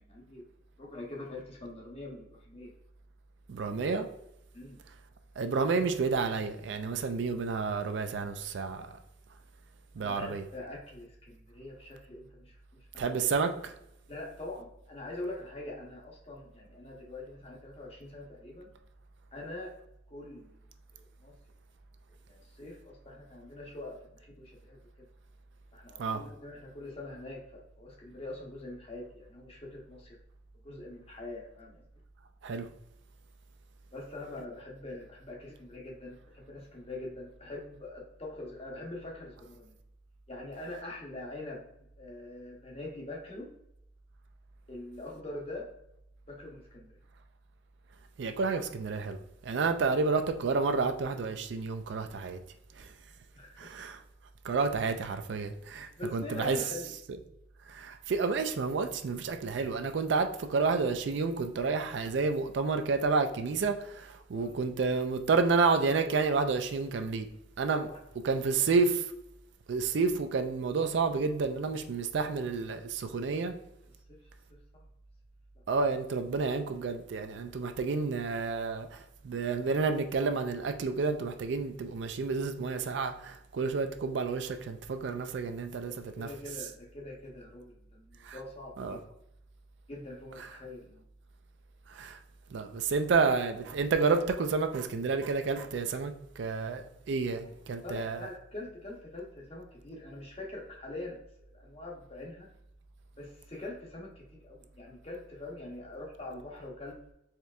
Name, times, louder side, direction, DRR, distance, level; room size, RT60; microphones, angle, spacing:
voice 1, 0.1-0.4 0.8-2.7 4.5-4.8 10.0-13.0 14.1-18.7 19.3-19.7 20.1-20.6 20.9-21.4 22.3-24.8 25.7-30.2 30.6-31.8 33.9-39.8 40.3-41.6 42.0-43.5 44.7-45.7 46.3-46.9 53.3-53.7 55.7-56.9 64.3-64.6 67.8-68.0 72.2-72.7 73.2-73.4 74.1-74.2 74.5-74.6 85.8-89.1 89.9-91.0 97.4-97.5 97.8-101.2 101.5-102.5 103.1-107.0, left 2 dB, 30° left, 0.8 m, -44 dB
voice 2, 3.5-4.1 5.4-8.9 10.0-10.4 13.0-13.7 26.0-26.2 32.4-32.7 48.2-52.4 52.8-52.9 53.6-54.0 54.4-56.6 57.7-67.3 67.6-67.9 68.2-69.0 69.7-73.5 75.7-86.3 88.2-88.4 88.8-89.0 91.9-92.2 92.5-98.3, right 4 dB, 70° right, 0.4 m, -30 dB
4.4 x 3.3 x 2.4 m
head